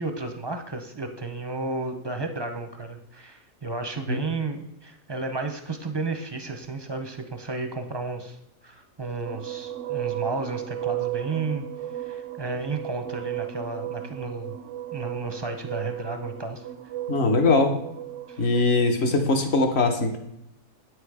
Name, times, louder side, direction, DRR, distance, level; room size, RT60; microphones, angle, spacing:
voice 1, 0.0-8.4 8.6-11.7 12.0-14.6 14.9-16.6 18.3-18.4, right 3 dB, 25° right, 6 dB, 0.5 m, -32 dB
sound 1, 9.3-18.6, right 13 dB, 65° right, 0.8 m, -34 dB
voice 2, 17.1-17.8 18.4-20.2, left 3 dB, 50° left, 6 dB, 1.2 m, -21 dB
8.6 x 6.4 x 4.8 m, 0.78 s
omnidirectional pair, 1.5 m